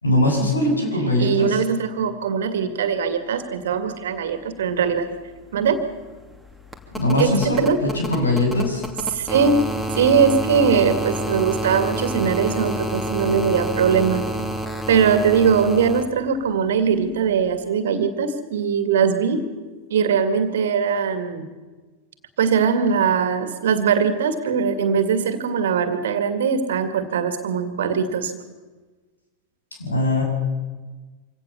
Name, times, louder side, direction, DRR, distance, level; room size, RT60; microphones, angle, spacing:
voice 1, 0.0-1.5 6.9-8.8 29.8-30.2, left 1 dB, 80° left, 1 dB, 7.1 m, -21 dB
voice 2, 1.2-5.1 5.5-5.8 7.2-7.8 9.1-9.6 9.9-14.2 14.9-19.5 19.9-21.5 22.4-28.3, right 6 dB, 60° right, 10 dB, 2.2 m, -21 dB
sound 1, 4.8-4.9 5.1-16.0 17.5-17.6, equal, 5° left, 2.8 m, -29 dB
25.5 x 17.0 x 7.1 m, 1.3 s
figure-of-eight pair, 90°, 0 cm